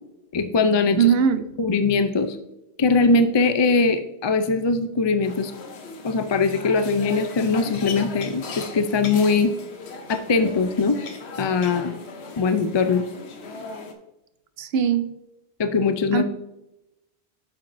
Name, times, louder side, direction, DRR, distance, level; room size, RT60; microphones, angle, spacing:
voice 1, 0.3-1.1 1.6-2.4 2.8-5.5 6.0-9.5 10.1-11.0 11.4-11.9 12.4-13.1 15.6-16.2, left 4 dB, 40° left, 0.4 m, -21 dB
voice 2, 1.0-1.6 14.6-15.1 16.1-16.2, right 8 dB, 75° right, 0.8 m, -20 dB
sound 1, 5.2-13.9, left 3 dB, 90° left, 1.2 m, -37 dB
8.6 x 7.4 x 2.6 m
omnidirectional pair, 1.1 m